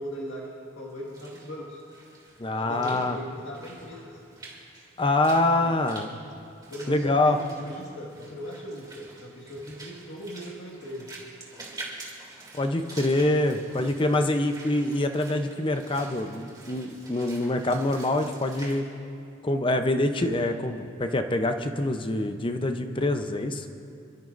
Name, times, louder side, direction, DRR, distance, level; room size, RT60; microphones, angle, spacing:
voice 1, 0.0-1.8 2.5-4.2 6.7-11.1, equal, 80° left, -5 dB, 1.8 m, -39 dB
Walk footsteps / Splash splatter, 0.9-18.8, right 3 dB, 20° right, 2.6 m, -47 dB
voice 2, 2.4-3.2 5.0-6.1 6.9-7.4 12.5-18.9 19.4-23.6, left 2 dB, 25° left, 7 dB, 0.7 m, -25 dB
28.5 x 12.5 x 2.6 m, 2.5 s
head